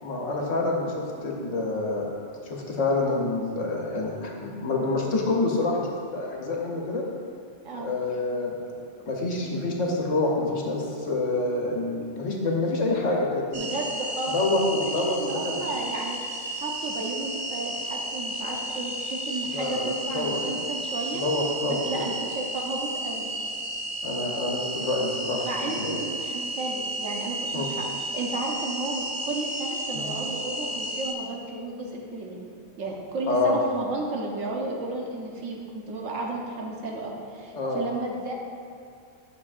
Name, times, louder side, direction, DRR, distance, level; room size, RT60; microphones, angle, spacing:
voice 1, 0.0-2.1 2.4-5.9 6.1-7.0 7.7-8.5 9.0-13.7 14.3-15.7 19.5-20.4 21.1-22.1 24.0-25.9 27.5-27.7 29.9-30.1 33.3-33.6 37.5-37.8, left 2 dB, 70° left, -1 dB, 1.4 m, -27 dB
voice 2, 7.6-7.9 13.5-14.4 14.9-16.2 16.5-21.2 21.7-23.3 25.4-27.9 28.1-32.4 32.8-38.3, right 2 dB, 75° right, -1 dB, 1.3 m, -33 dB
sound 1, 13.5-31.1, right 1 dB, 50° right, 0.6 m, -33 dB
11.0 x 6.3 x 2.5 m, 2.4 s
omnidirectional pair, 1.3 m